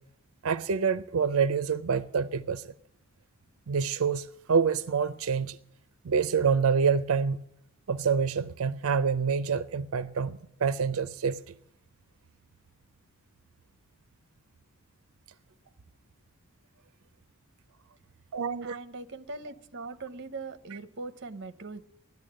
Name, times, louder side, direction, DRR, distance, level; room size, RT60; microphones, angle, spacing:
voice 1, 0.4-2.7 3.7-5.6 6.0-7.4 7.9-11.5 18.3-18.8, right 6 dB, 90° right, 0.5 m, -27 dB
voice 2, 18.6-21.8, right 3 dB, 55° right, 0.8 m, -41 dB
13.0 x 10.5 x 7.5 m
head